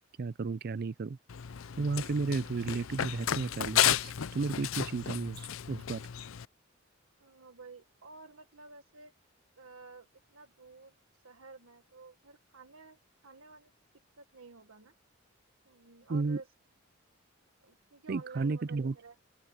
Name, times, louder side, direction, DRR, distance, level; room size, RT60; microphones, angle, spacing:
voice 1, 0.2-1.2 1.8-6.0 16.1-16.4 18.1-18.9, right 4 dB, 50° right, 0.4 m, -33 dB
Run, 1.3-6.4, left 10 dB, 80° left, 0.6 m, -33 dB
voice 2, 7.2-9.1 9.6-13.7 14.2-14.9 15.7-16.5 17.6-19.2, right 4 dB, 90° right, 1.7 m, -52 dB
open air
head